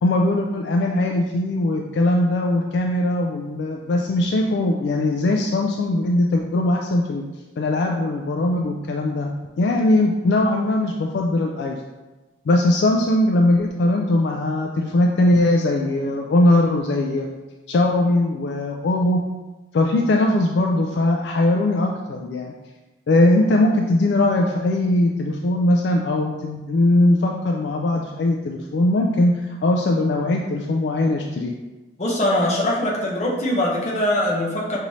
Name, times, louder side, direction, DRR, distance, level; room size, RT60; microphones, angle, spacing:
voice 1, 0.0-7.2 7.6-9.3 9.6-11.8 12.5-17.3 17.7-19.2 19.7-22.5 23.1-31.5, left 1 dB, 65° left, 1 dB, 0.3 m, -20 dB
voice 2, 32.0-34.8, left 1 dB, 35° left, -3 dB, 0.8 m, -22 dB
5.2 x 2.7 x 3.0 m, 1.2 s
head